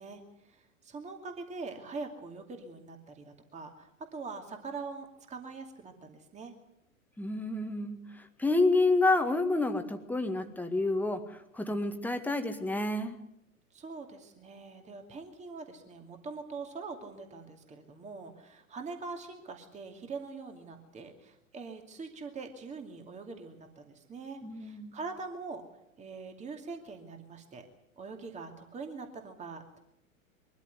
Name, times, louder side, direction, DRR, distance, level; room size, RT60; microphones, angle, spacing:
voice 1, 0.0-6.5 13.7-25.6 26.0-27.7 28.0-29.8, right 4 dB, 15° right, 4 dB, 2.5 m, -43 dB
voice 2, 7.2-8.0 8.4-11.2 11.5-13.1 24.4-25.0, left 2 dB, 5° left, 7 dB, 1.9 m, -28 dB
23.0 x 13.5 x 9.5 m, 0.83 s
figure-of-eight pair, 100°, 42 cm